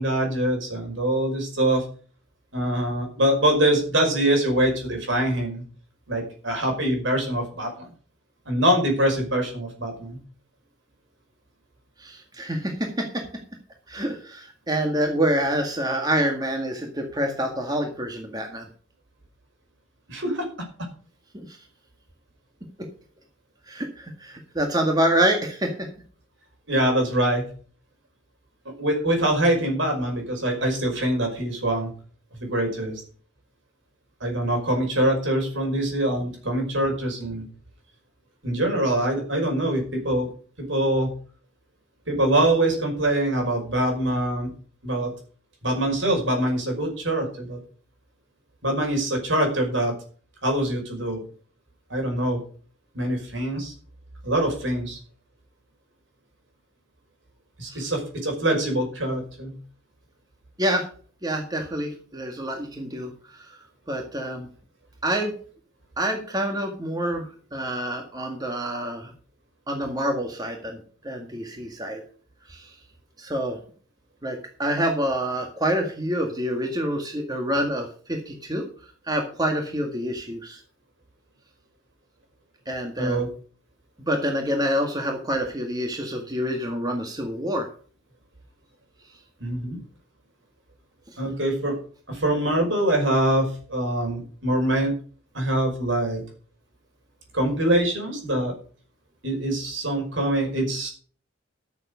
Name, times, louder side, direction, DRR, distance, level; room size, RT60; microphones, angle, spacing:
voice 1, 0.0-1.8 2.5-5.6 6.1-7.9 8.5-10.2 20.1-20.5 26.7-27.5 28.8-31.9 32.3-33.0 34.2-37.5 38.4-40.3 40.6-41.1 42.1-44.5 44.8-45.1 45.6-47.6 48.6-49.9 50.4-51.2 51.9-52.4 52.9-53.7 54.2-55.0 57.6-59.6 83.0-83.3 89.4-89.8 91.2-91.8 92.1-94.9 95.3-96.2 97.3-98.5 99.2-100.9, right 1 dB, 70° right, 3 dB, 5.5 m, -24 dB
voice 2, 12.0-13.2 13.9-18.7 21.3-21.6 23.7-25.9 57.7-57.9 60.6-60.9 61.2-63.6 63.9-64.5 65.0-65.4 66.0-69.1 69.7-72.0 72.5-72.8 73.2-73.6 74.2-78.6 79.0-80.6 82.7-83.2 84.0-87.7 91.1-91.2, equal, 20° right, 2 dB, 1.9 m, -27 dB
13.5 x 7.3 x 5.2 m, 0.42 s
head